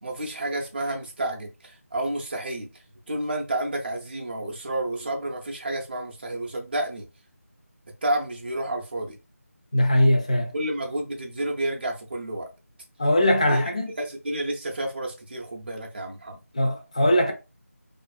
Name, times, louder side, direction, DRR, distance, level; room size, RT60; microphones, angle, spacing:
voice 1, 0.0-2.7 3.1-7.1 8.0-9.2 10.5-12.5 13.5-13.6 14.0-16.4, right 1 dB, 40° right, 0.5 m, -30 dB
voice 2, 9.7-10.5 13.0-13.9 16.5-17.3, left 1 dB, 25° left, 0.4 m, -21 dB
2.4 x 2.2 x 2.3 m
figure-of-eight pair, 165°, 8 cm